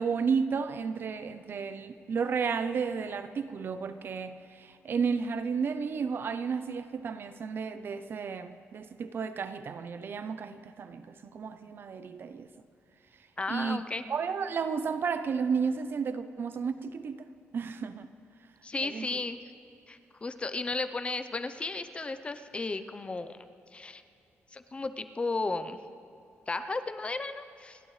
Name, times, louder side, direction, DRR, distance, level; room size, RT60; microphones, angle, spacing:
voice 1, 0.0-12.5 13.5-13.8 14.1-17.3 17.5-18.1 18.8-19.1, right 5 dB, 50° right, 11 dB, 0.7 m, -32 dB
voice 2, 13.4-14.0 18.6-19.4 19.9-23.4 23.7-24.0 24.5-25.8 26.5-27.8, left 3 dB, 25° left, 10 dB, 0.7 m, -34 dB
28.5 x 11.5 x 3.3 m, 2.7 s
cardioid pair, 115°, 5 cm